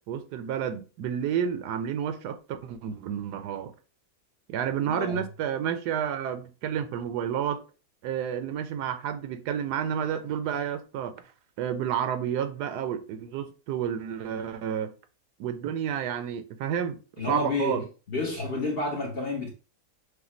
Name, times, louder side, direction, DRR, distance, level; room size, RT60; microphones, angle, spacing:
voice 1, 0.1-3.7 4.5-7.6 8.0-11.1 11.6-14.9 15.4-17.0 17.3-17.8, right 9 dB, 75° right, 1.1 m, -30 dB
voice 2, 4.8-5.2 17.2-19.5, left 3 dB, 45° left, 0.9 m, -30 dB
6.4 x 2.2 x 3.0 m
omnidirectional pair, 1.8 m